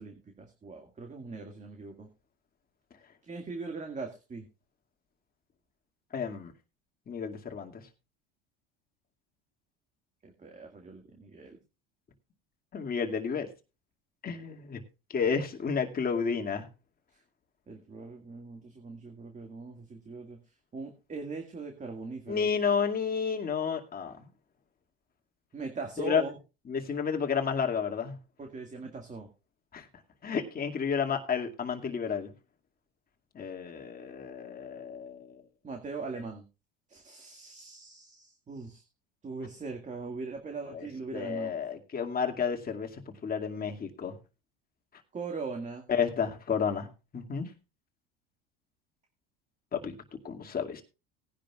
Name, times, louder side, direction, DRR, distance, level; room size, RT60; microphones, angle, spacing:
voice 1, 0.0-2.1 3.2-4.5 10.2-11.6 17.7-20.4 20.7-22.5 25.5-26.3 28.4-29.3 35.6-36.4 36.9-38.8 39.2-41.5 45.1-45.8, right 4 dB, 25° right, 3 dB, 2.0 m, -40 dB
voice 2, 6.1-6.5 7.1-7.8 12.7-13.5 14.2-14.8 15.1-16.7 22.3-24.3 26.0-26.2 26.7-28.2 29.7-29.9 30.2-32.3 33.3-35.4 40.7-40.9 41.1-42.9 43.2-44.2 45.9-46.9 47.1-47.5 49.7-50.0 50.2-50.8, left 6 dB, 30° left, 3 dB, 2.3 m, -31 dB
18.5 x 10.5 x 2.4 m, 0.30 s
supercardioid pair, 105°, 30 cm